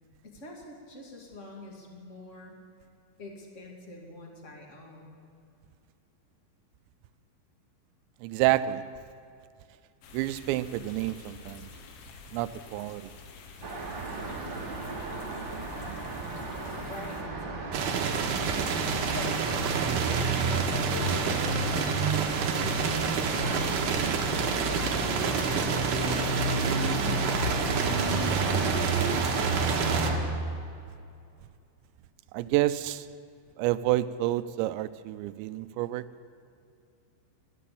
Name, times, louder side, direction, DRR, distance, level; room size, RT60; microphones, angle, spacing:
voice 1, 0.2-2.6 3.2-5.2 16.9-17.5 19.0-19.4 19.9-22.0 23.3-23.8 24.7-26.4, left 1 dB, 30° left, 0 dB, 1.3 m, -44 dB
voice 2, 8.2-8.8 10.1-11.7 12.3-13.1 32.3-33.1 33.6-36.0, right 15 dB, 85° right, 14 dB, 2.7 m, -28 dB
sound 1, 10.0-17.2, left 4 dB, 85° left, 3.7 m, -48 dB
Traffic noise roadway noise, 13.6-30.2, right 2 dB, 45° right, 1.5 m, -31 dB
sound 2, 17.7-30.1, right 6 dB, 65° right, 2.2 m, -29 dB
13.5 x 12.5 x 8.4 m, 2.4 s
omnidirectional pair, 5.2 m